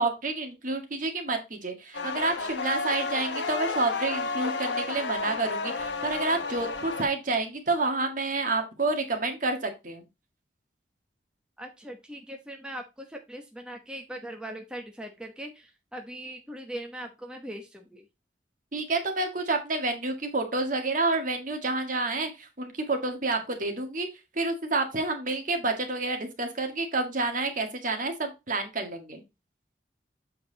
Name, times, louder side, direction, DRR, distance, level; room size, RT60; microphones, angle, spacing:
voice 1, 0.0-10.0 18.7-24.1 24.4-29.2, right 3 dB, 45° right, 4 dB, 1.8 m, -29 dB
sound 1, 1.9-7.0, left 4 dB, 85° left, 1.1 m, -31 dB
voice 2, 11.6-18.0, right 1 dB, 5° right, 2 dB, 1.0 m, -40 dB
7.6 x 4.5 x 4.0 m, 0.24 s
head